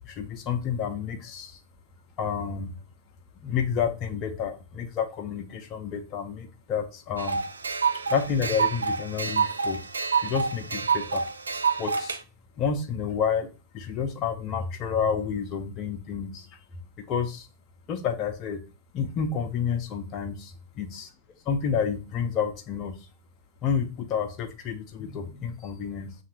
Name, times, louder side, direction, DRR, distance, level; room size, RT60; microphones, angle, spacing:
voice 1, 0.0-1.6 2.2-2.7 3.4-7.4 8.1-9.8 10.2-11.2 11.8-12.2 12.6-16.6 17.0-17.5 17.9-18.6 18.9-21.1 21.5-23.1 23.6-26.1, left 7 dB, 35° left, 6 dB, 0.6 m, -30 dB
Cuckoo-clock, 7.2-12.2, right 5 dB, 75° right, 0.4 m, -27 dB
7.2 x 2.5 x 2.9 m, 0.33 s
figure-of-eight pair, 90°, 0 cm